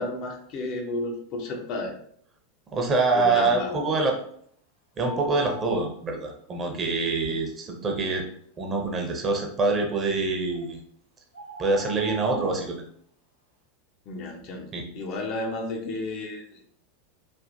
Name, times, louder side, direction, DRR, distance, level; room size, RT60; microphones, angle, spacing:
voice 1, 0.0-2.0 3.1-4.0 14.1-16.6, left 2 dB, 45° left, 2 dB, 0.5 m, -32 dB
voice 2, 2.7-4.1 5.0-8.3 8.6-10.8 11.6-12.9 14.7-14.8, right 3 dB, 30° right, 1 dB, 0.7 m, -25 dB
sound 1, 5.0-5.9 10.5-10.6 11.3-12.6, right 2 dB, 90° right, 0.9 m, -40 dB
3.3 x 2.5 x 2.6 m, 0.62 s
figure-of-eight pair, 85°, 0 cm